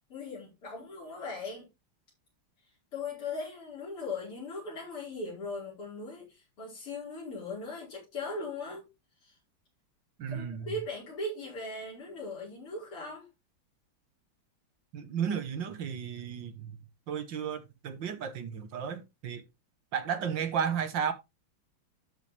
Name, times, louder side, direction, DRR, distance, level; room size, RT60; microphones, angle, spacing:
voice 1, 0.1-1.7 2.9-8.9 9.2-9.4 10.3-13.3, left 2 dB, 85° left, 5.6 m, -39 dB
voice 2, 10.2-10.7 14.9-16.8 17.1-19.4 19.9-21.1, right 7 dB, 60° right, 1.9 m, -33 dB
12.0 x 5.8 x 3.4 m
omnidirectional pair, 2.4 m